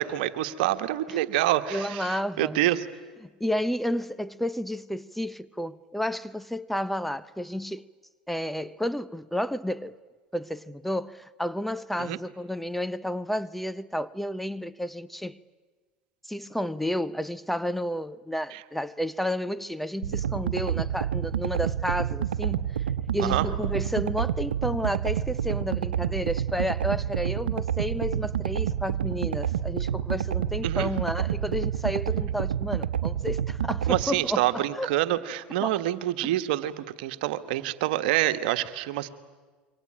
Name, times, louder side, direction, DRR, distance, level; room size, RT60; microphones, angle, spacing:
voice 1, 0.0-2.8 12.0-12.2 18.5-18.6 23.2-23.5 30.6-30.9 33.9-39.1, right 14 dB, 70° right, 1.4 m, -27 dB
voice 2, 1.7-2.6 3.4-7.9 8.3-10.0 10.3-15.4 16.2-22.7 23.1-34.9 35.6-35.7 36.2-36.3, equal, 5° left, 0.7 m, -31 dB
sound 1, 20.0-34.0, right 9 dB, 90° right, 1.0 m, -28 dB
27.0 x 24.0 x 8.8 m
hypercardioid pair, 85°, 5 cm